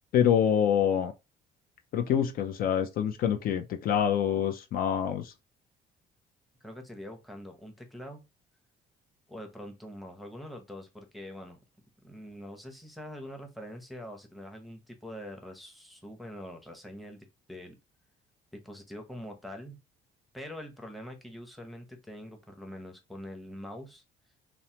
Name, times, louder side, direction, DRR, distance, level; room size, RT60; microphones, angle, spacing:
voice 1, 0.1-1.1 1.9-5.3, left 9 dB, 55° left, 0.4 m, -26 dB
voice 2, 6.6-8.2 9.3-11.6 12.0-17.8 18.5-19.8 20.3-24.0, left 1 dB, ahead, 0.7 m, -44 dB
3.1 x 2.0 x 2.8 m
cardioid pair, 100°, 18 cm